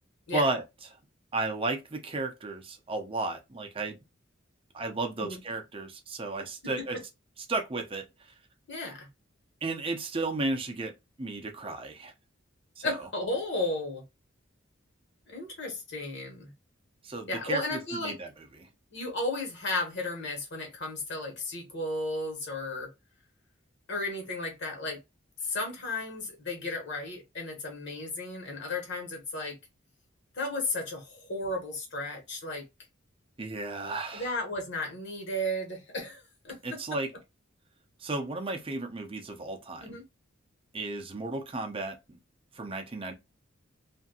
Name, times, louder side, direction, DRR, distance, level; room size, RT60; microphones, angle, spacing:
voice 1, 0.3-0.6 1.3-4.0 4.7-7.0 7.5-8.3 9.6-10.9 11.2-12.1 12.8-12.9 17.0-18.3 18.6-18.7 33.4-34.3 36.6-37.1 38.0-40.0 40.7-42.2 42.5-43.1, right 2 dB, 25° right, 0.6 m, -33 dB
voice 2, 8.7-9.1 12.8-14.0 15.3-16.5 17.3-18.2 18.9-22.9 23.9-25.0 25.4-29.6 30.3-32.6 34.1-36.8 39.8-40.0, left 2 dB, 60° left, 1.2 m, -34 dB
2.8 x 2.5 x 2.7 m
head